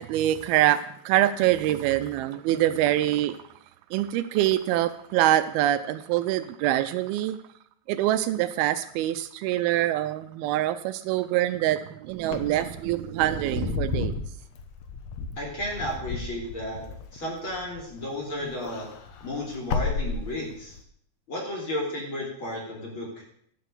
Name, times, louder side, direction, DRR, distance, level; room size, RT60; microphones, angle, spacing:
voice 1, 0.0-3.4 3.9-7.4 7.9-14.2, right 13 dB, 85° right, 12 dB, 2.5 m, -25 dB
Wind / Car, 12.2-18.0 18.4-20.8, left 5 dB, 70° left, 1.6 m, -33 dB
voice 2, 15.4-16.8 17.1-18.9 19.2-20.8 21.3-23.1, left 1 dB, 35° left, -2 dB, 3.5 m, -33 dB
12.0 x 8.0 x 6.8 m, 0.65 s
omnidirectional pair, 4.4 m